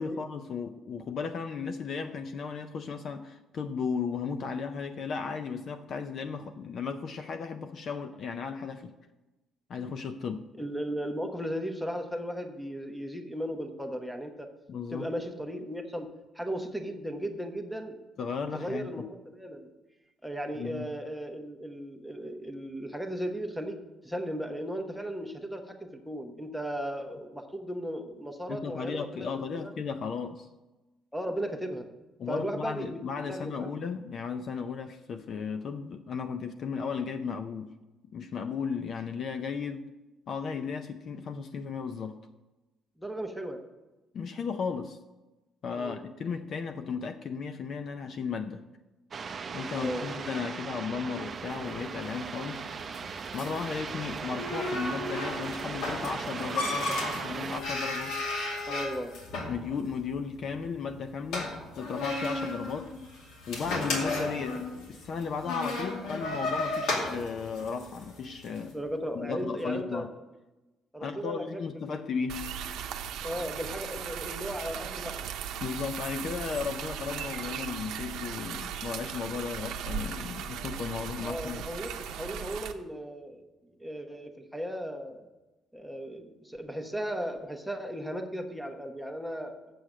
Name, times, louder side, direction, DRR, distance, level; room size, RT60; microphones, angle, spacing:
voice 1, 0.0-8.9 9.7-10.4 14.7-15.1 18.2-19.1 20.6-20.9 28.5-30.5 32.2-37.7 38.1-39.9 40.3-42.2 44.1-45.0 45.6-48.6 49.5-52.6 53.3-58.2 59.5-62.9 63.5-68.8 69.1-70.1 71.0-72.5 75.6-81.6, left 5 dB, 45° left, 8 dB, 0.5 m, -35 dB
voice 2, 10.6-14.5 14.9-16.1 16.3-18.0 18.5-19.7 20.2-23.8 24.0-29.7 31.1-31.9 32.3-33.7 43.0-43.6 45.8-46.0 49.7-50.0 58.7-59.1 68.7-70.1 70.9-71.9 73.2-75.3 81.2-83.4 83.8-85.3 85.7-89.7, equal, ahead, 5 dB, 0.9 m, -36 dB
sound 1, 49.1-57.6, right 5 dB, 30° right, 0.6 m, -38 dB
sound 2, 51.4-68.6, left 2 dB, 80° left, 2.4 m, -35 dB
sound 3, 72.3-82.7, right 8 dB, 80° right, 0.7 m, -37 dB
7.7 x 6.5 x 7.3 m, 1.1 s
cardioid pair, 155°, 0 cm